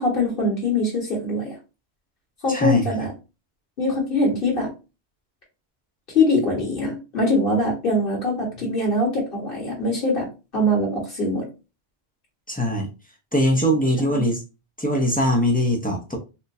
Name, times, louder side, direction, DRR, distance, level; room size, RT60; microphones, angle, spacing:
voice 1, 0.0-1.5 2.4-3.1 3.8-4.7 6.1-10.3 10.5-11.5 14.0-14.2, left 1 dB, 50° left, 1.6 m, -22 dB
voice 2, 2.5-2.9 12.5-12.9 13.3-14.4 14.8-16.2, equal, 10° left, 0.5 m, -21 dB
4.2 x 2.5 x 2.6 m
omnidirectional pair, 1.2 m